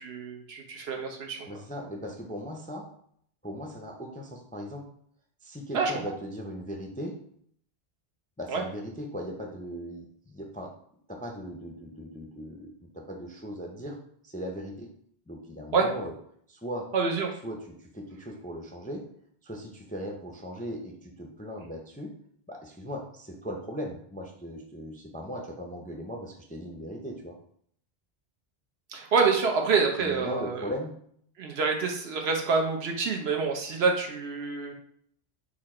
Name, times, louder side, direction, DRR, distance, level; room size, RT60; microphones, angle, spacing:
voice 1, 0.0-1.5 5.7-5.9 8.5-8.6 15.7-15.9 16.9-17.3 28.9-30.7 31.4-34.7, right 4 dB, 75° right, 2 dB, 1.0 m, -27 dB
voice 2, 1.5-2.8 3.4-4.8 5.4-7.1 8.4-10.7 11.1-14.0 14.2-14.9 15.3-16.1 16.5-16.8 17.4-19.0 19.4-22.1 22.5-27.3 30.0-30.9, equal, 10° left, 1 dB, 0.4 m, -38 dB
4.4 x 2.5 x 4.2 m, 0.65 s
omnidirectional pair, 1.1 m